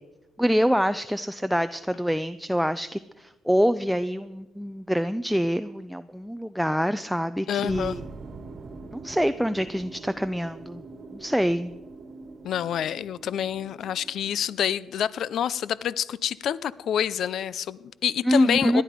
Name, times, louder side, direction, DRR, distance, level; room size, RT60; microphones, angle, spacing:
voice 1, 0.4-8.0 8.9-10.8 11.1-11.7 18.2-18.8, equal, ahead, 0.5 m, -25 dB
voice 2, 7.5-8.0 12.4-18.8, left 9 dB, 70° left, 0.5 m, -27 dB
sound 1, 7.7-14.6, right 4 dB, 50° right, 1.5 m, -43 dB
17.5 x 11.0 x 5.1 m
cardioid pair, 90°, 0 cm